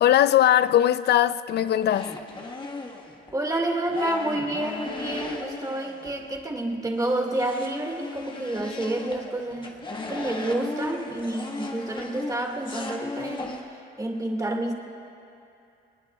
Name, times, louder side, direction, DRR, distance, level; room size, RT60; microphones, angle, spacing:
voice 1, 0.0-2.1, left 11 dB, 55° left, 0.4 m, -20 dB
sound 1, 1.6-3.4 3.9-6.5 6.7-13.6, left 2 dB, 25° left, 1.5 m, -36 dB
voice 2, 3.3-9.8 10.1-13.6 14.0-14.7, right 1 dB, 15° right, 1.9 m, -29 dB
22.5 x 20.0 x 2.3 m
cardioid pair, 90°, 20 cm